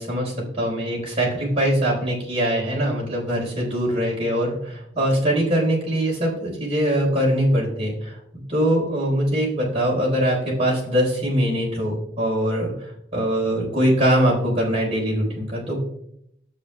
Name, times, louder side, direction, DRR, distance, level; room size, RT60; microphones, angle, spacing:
voice 1, 0.0-8.2 8.5-15.8, equal, 35° right, -3 dB, 4.1 m, -22 dB
13.0 x 8.3 x 2.3 m, 0.74 s
head